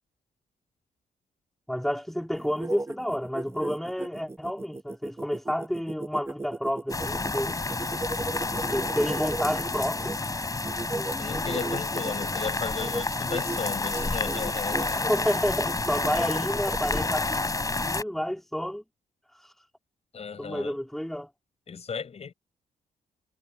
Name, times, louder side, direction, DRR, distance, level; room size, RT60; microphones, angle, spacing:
voice 1, 1.7-7.5 8.7-10.2 10.9-11.5 15.0-17.4 17.8-18.8 20.4-21.3, equal, ahead, 3.5 m, -30 dB
sound 1, 2.3-10.2 10.6-12.3 12.7-13.0 13.3-13.6 13.9-14.9 15.3-17.1, right 2 dB, 20° right, 1.2 m, -36 dB
sound 2, 6.9-18.0, left 3 dB, 25° left, 6.3 m, -30 dB
voice 2, 11.2-15.1 16.1-16.3 20.1-20.8 21.7-22.3, left 6 dB, 50° left, 5.8 m, -35 dB
cardioid pair, 70°, 14 cm